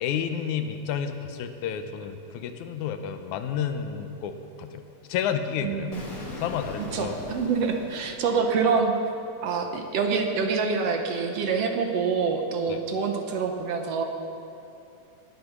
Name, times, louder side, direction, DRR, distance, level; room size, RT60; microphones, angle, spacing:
voice 1, 0.0-5.9 6.4-7.2 12.7-12.8, left 8 dB, 85° left, 8 dB, 2.2 m, -31 dB
voice 2, 5.6-6.0 6.9-8.9 9.4-14.0, right 5 dB, 65° right, 4 dB, 1.9 m, -26 dB
Explosion, 5.9-8.8, left 2 dB, 35° left, 1.9 m, -40 dB
18.5 x 9.4 x 6.0 m, 2.7 s
omnidirectional pair, 3.3 m